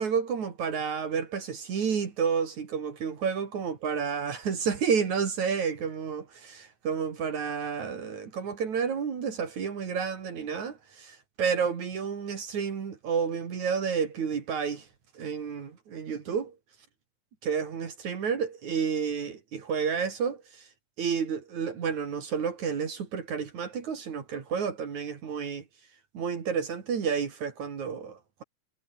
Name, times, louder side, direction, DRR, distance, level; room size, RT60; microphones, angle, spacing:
voice 1, 0.0-14.9 15.2-16.6 17.4-20.6 21.0-25.6 26.1-28.4, right 6 dB, 70° right, 4.2 m, -30 dB
omnidirectional pair, 3.5 m